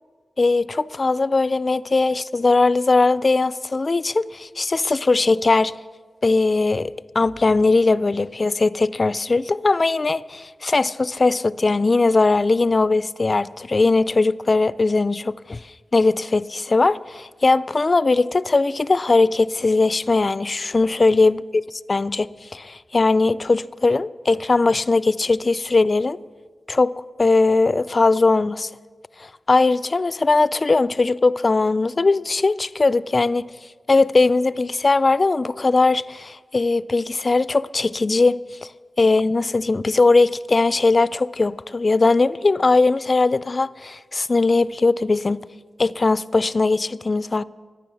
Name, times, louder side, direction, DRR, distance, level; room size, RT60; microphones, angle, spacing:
voice 1, 0.4-5.7 6.2-15.6 15.9-21.4 21.9-26.2 26.7-26.9 27.2-28.7 29.2-33.5 33.9-38.4 39.0-45.4 45.8-47.4, left 3 dB, 45° left, 0.4 m, -19 dB
14.0 x 9.6 x 7.0 m
cardioid pair, 60°, 0 cm